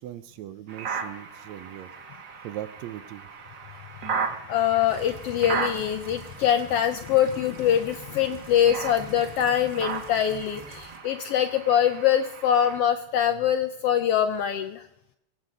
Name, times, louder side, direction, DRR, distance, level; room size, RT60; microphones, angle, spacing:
voice 1, 0.0-1.9 2.4-3.2, right 13 dB, 75° right, 13 dB, 1.9 m, -39 dB
sound 1, 0.7-12.8, right 5 dB, 45° right, 1.8 m, -36 dB
voice 2, 4.5-14.9, left 10 dB, 75° left, 9 dB, 1.4 m, -24 dB
sound 2, 4.9-11.0, right 1 dB, 20° right, 1.4 m, -47 dB
22.0 x 8.1 x 5.1 m, 0.83 s
omnidirectional pair, 3.3 m